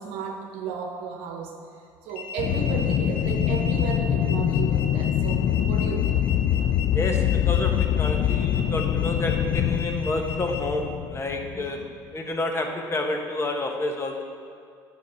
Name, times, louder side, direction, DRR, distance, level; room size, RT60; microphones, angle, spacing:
voice 1, 0.0-1.6 2.0-6.2 11.5-11.8, right 6 dB, 80° right, 3 dB, 0.9 m, -34 dB
sound 1, 2.1-10.6, left 4 dB, 85° left, 1.1 m, -38 dB
Aircraft, 2.4-11.8, left 10 dB, 55° left, 0.4 m, -24 dB
voice 2, 6.9-11.8 12.1-14.2, left 2 dB, 30° left, 3 dB, 1.2 m, -29 dB
8.3 x 4.9 x 7.4 m, 2.2 s
supercardioid pair, 90°, 9 cm